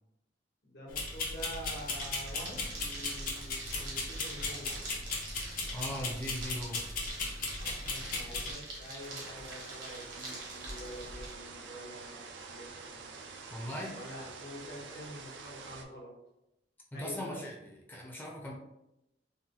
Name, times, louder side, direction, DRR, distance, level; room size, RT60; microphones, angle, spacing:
voice 1, 0.6-4.8 7.6-13.1 13.9-16.1 16.9-17.4, equal, 70° left, -4 dB, 1.2 m, -47 dB
sound 1, 0.9-8.5, left 3 dB, 55° left, 0.7 m, -37 dB
sound 2, 1.0-11.3, right 2 dB, 75° right, 1.1 m, -45 dB
voice 2, 5.7-6.8 13.5-13.9 16.9-17.6 17.9-18.5, equal, 10° left, -2 dB, 0.6 m, -39 dB
sound 3, 9.0-15.8, right 4 dB, 90° right, 0.5 m, -47 dB
3.8 x 2.2 x 2.8 m, 0.87 s
head